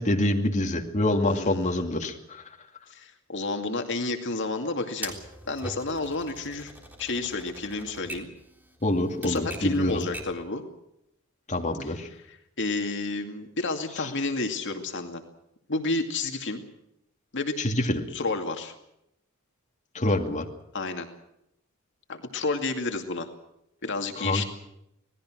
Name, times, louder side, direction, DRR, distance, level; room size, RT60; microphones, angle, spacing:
voice 1, 0.0-2.4 8.8-10.0 11.5-12.1 17.6-18.0 19.9-20.5 24.2-24.4, left 1 dB, 35° left, 3 dB, 2.5 m, -26 dB
voice 2, 1.1-2.2 2.9-5.1 5.5-6.7 7.0-8.3 9.2-10.6 11.8-15.2 15.7-16.6 17.3-17.6 18.1-18.7 20.7-21.1 22.1-23.3 23.8-24.4, left 3 dB, 60° left, 5 dB, 2.3 m, -31 dB
Typewriter, 5.0-10.5, right 1 dB, 10° right, 3.5 m, -42 dB
27.0 x 19.0 x 6.2 m, 0.80 s
head